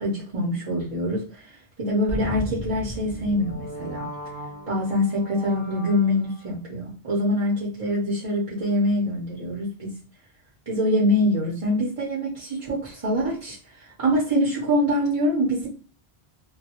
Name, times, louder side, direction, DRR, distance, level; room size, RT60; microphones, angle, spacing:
voice 1, 0.0-1.4 1.8-4.1 4.7-9.9 10.7-13.6 14.0-15.7, left 1 dB, 35° right, -5 dB, 0.6 m, -24 dB
sound 1, 2.1-6.5, equal, 25° left, 0.6 m, -36 dB
2.2 x 2.2 x 2.8 m, 0.36 s
omnidirectional pair, 1.1 m